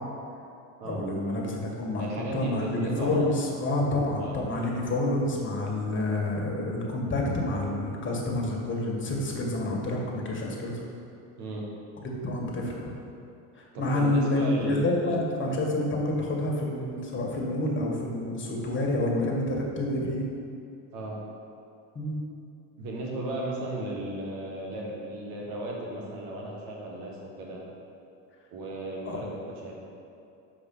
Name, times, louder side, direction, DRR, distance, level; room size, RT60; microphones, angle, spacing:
voice 1, 0.8-10.8 12.0-12.9 13.5-20.2 21.9-22.1 29.1-29.2, left 1 dB, 30° left, -1 dB, 1.6 m, -28 dB
voice 2, 2.0-3.3 4.2-4.7 11.4-11.7 13.7-15.1 20.9-21.2 22.8-27.6 28.5-29.7, right 1 dB, 70° right, -2 dB, 1.7 m, -35 dB
6.0 x 4.9 x 5.5 m, 2.5 s
supercardioid pair, 95°, 38 cm